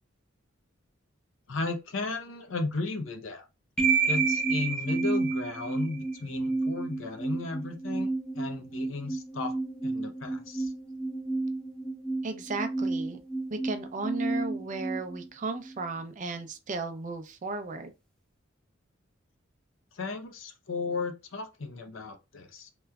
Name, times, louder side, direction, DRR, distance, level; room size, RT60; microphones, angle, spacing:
voice 1, 1.5-3.5 4.1-9.5 9.8-10.7 19.9-22.7, left 3 dB, 70° left, 0.6 m, -35 dB
sound 1, 3.8-15.8, right 3 dB, 5° left, 0.7 m, -31 dB
voice 2, 12.2-13.2 13.5-17.9, right 3 dB, 40° right, 0.5 m, -35 dB
3.3 x 3.0 x 2.3 m
head